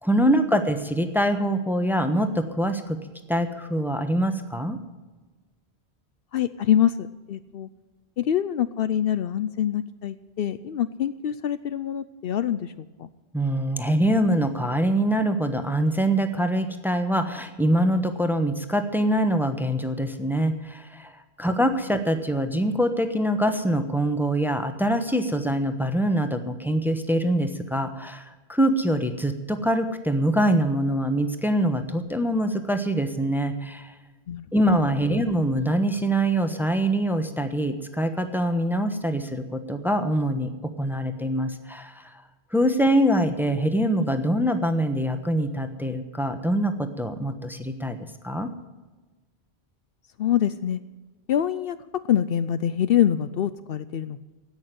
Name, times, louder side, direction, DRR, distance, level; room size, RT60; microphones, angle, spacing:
voice 1, 0.0-3.0 3.3-4.8 13.3-21.1 21.4-28.2 28.5-33.9 34.5-42.2 42.5-48.0 48.2-48.5, right 1 dB, ahead, 8 dB, 1.0 m, -24 dB
voice 2, 6.3-7.7 8.2-13.1 34.3-34.4 50.2-50.8 51.3-51.8 52.1-54.2, left 10 dB, 65° left, 13 dB, 0.8 m, -25 dB
16.5 x 6.5 x 9.4 m, 1.2 s
omnidirectional pair, 1.1 m